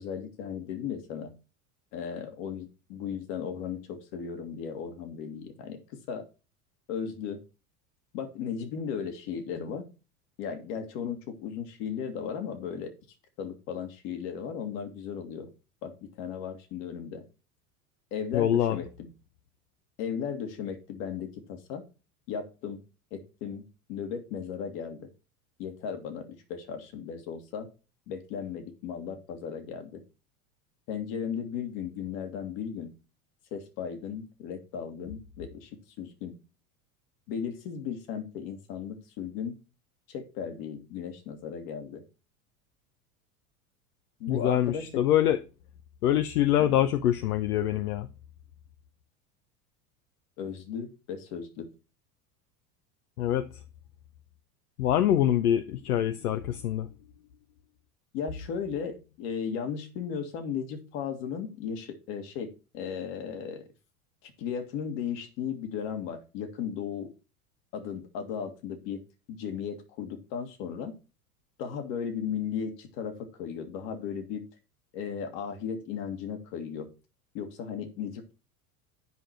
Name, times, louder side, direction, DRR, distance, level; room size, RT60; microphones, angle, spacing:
voice 1, 0.0-1.3 1.9-6.3 6.9-7.4 8.1-9.9 10.4-12.9 13.4-15.5 15.8-17.2 18.1-19.1 20.0-21.8 22.3-22.8 23.1-25.1 25.6-27.7 28.1-30.0 30.9-32.9 33.5-35.7 36.0-36.4 37.3-39.6 40.1-42.0 44.2-45.0 46.6-46.8 50.4-51.7 58.1-63.7 64.2-67.1 67.7-69.0 69.3-71.0 71.6-74.4 74.9-76.9 77.3-78.3, left 7 dB, 60° left, 1.9 m, -36 dB
voice 2, 18.3-18.8 44.3-45.4 46.0-48.1 53.2-53.5 54.8-56.9, left 11 dB, 80° left, 0.7 m, -25 dB
9.5 x 5.1 x 4.4 m
hypercardioid pair, 90°, 44 cm